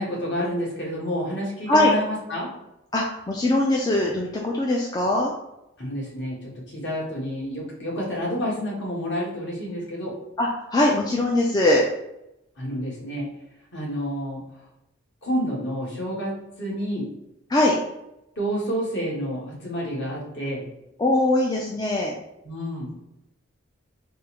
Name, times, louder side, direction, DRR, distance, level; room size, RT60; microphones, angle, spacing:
voice 1, 0.0-2.5 5.8-10.1 12.6-13.3 13.7-14.4 15.2-17.1 18.4-20.6 22.4-22.9, equal, 60° left, -4 dB, 1.2 m, -29 dB
voice 2, 2.9-5.3 10.4-11.8 17.5-17.8 21.0-22.1, left 1 dB, 20° left, -2 dB, 0.3 m, -21 dB
3.5 x 2.0 x 4.3 m, 0.87 s
head